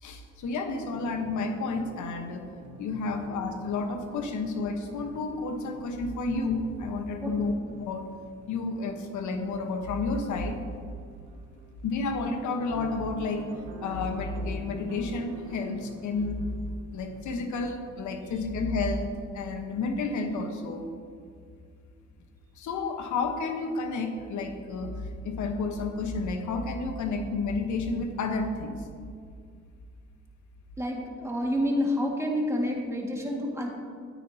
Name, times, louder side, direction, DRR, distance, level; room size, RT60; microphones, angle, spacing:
voice 1, 0.0-2.5 2.8-7.5 7.8-8.1 8.5-10.6 11.8-13.5 13.8-16.4 16.9-20.8 22.6-28.9, left 3 dB, 75° left, 5 dB, 1.2 m, -31 dB
sound 1, 0.7-17.4, right 3 dB, 80° right, 1.3 m, -48 dB
voice 2, 30.8-33.7, left 1 dB, 10° right, -1 dB, 2.0 m, -28 dB
13.0 x 9.4 x 2.8 m, 2.2 s
cardioid pair, 90°, 30 cm